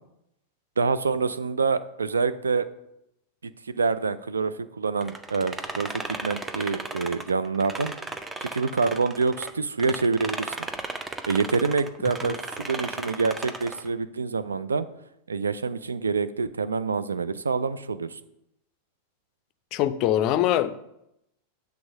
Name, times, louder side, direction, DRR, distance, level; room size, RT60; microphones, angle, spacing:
voice 1, 0.8-2.7 3.7-7.9 8.4-10.6 11.3-14.9 15.3-18.2, right 4 dB, 75° right, 13 dB, 0.4 m, -26 dB
sound 1, 5.0-9.5 9.8-13.9, right 3 dB, 15° right, 0.6 m, -35 dB
voice 2, 19.7-20.8, left 12 dB, 40° left, 13 dB, 0.4 m, -23 dB
7.8 x 3.5 x 6.4 m, 0.82 s
figure-of-eight pair, 90°, 0 cm